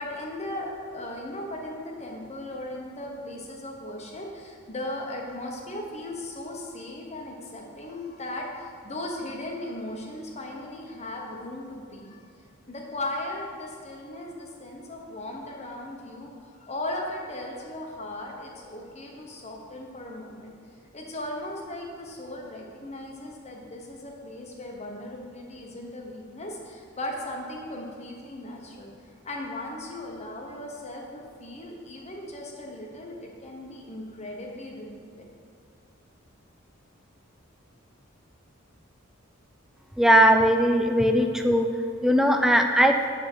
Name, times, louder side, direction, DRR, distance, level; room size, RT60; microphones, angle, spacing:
voice 1, 0.0-12.3 12.7-16.3 16.6-20.5 20.9-28.9 29.2-35.2, left 1 dB, 35° left, 0 dB, 1.1 m, -37 dB
voice 2, 40.0-41.7 42.0-43.0, equal, ahead, 4 dB, 0.4 m, -19 dB
8.6 x 3.6 x 6.1 m, 2.2 s
head